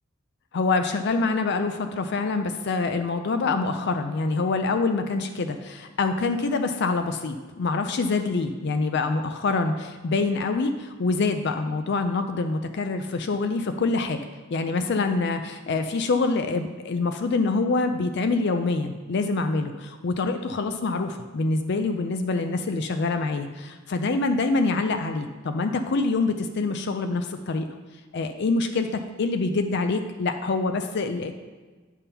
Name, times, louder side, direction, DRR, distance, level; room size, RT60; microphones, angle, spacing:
voice 1, 0.5-14.2 14.5-27.7 28.1-28.9 29.2-31.4, left 3 dB, 55° left, 7 dB, 0.4 m, -25 dB
8.3 x 3.6 x 5.7 m, 1.3 s
head